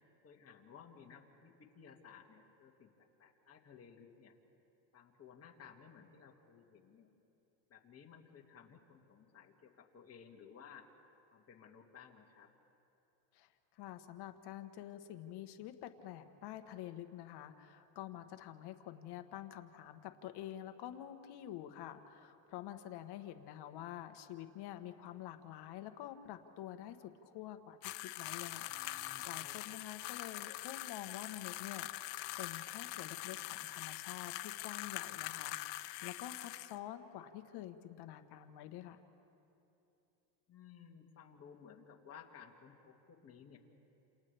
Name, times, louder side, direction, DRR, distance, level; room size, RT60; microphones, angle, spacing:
voice 1, 0.2-2.9 3.2-4.3 4.9-7.1 7.7-10.9 11.3-12.5 28.7-29.8 40.5-43.6, left 7 dB, 30° left, 0 dB, 2.2 m, -57 dB
voice 2, 13.8-28.7 29.2-31.9 32.4-39.0, left 12 dB, 55° left, 8 dB, 1.2 m, -48 dB
sound 1, 27.8-36.8, left 17 dB, 80° left, 0.9 m, -43 dB
28.5 x 28.5 x 3.4 m, 2.8 s
supercardioid pair, 130°, 49 cm